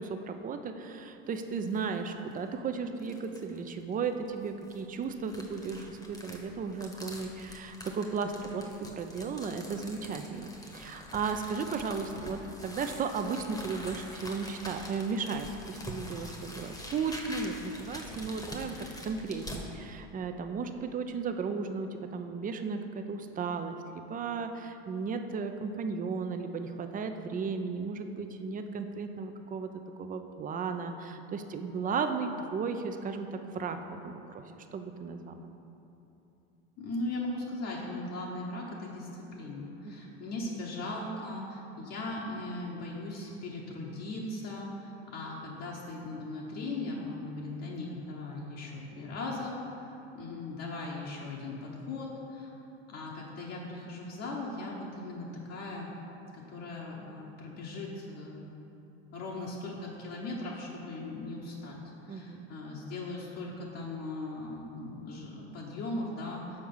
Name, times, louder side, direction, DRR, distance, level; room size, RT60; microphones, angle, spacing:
voice 1, 0.0-10.5 10.7-29.7 30.0-33.8 34.0-35.5 39.8-40.2 62.1-62.5, right 5 dB, 25° right, 7 dB, 0.5 m, -35 dB
sound 1, 1.3-1.9 2.3-2.4 3.0-3.6 4.4-19.6, left 1 dB, 10° left, 1.1 m, -45 dB
voice 2, 36.8-52.6 52.9-55.9 56.3-58.5 59.1-66.6, left 2 dB, 50° left, -4 dB, 1.1 m, -38 dB
6.5 x 4.6 x 5.5 m, 2.9 s
hypercardioid pair, 95°, 32 cm